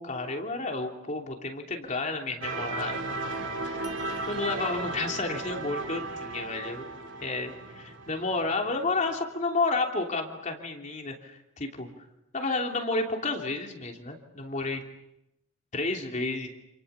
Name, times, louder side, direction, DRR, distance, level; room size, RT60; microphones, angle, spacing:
voice 1, 0.0-3.2 4.3-6.9 7.2-11.9 12.3-14.8 15.7-16.5, left 3 dB, 40° left, 2 dB, 3.1 m, -31 dB
sound 1, 2.4-9.2, right 3 dB, 70° right, 2.8 m, -35 dB
28.5 x 28.5 x 7.0 m, 0.87 s
head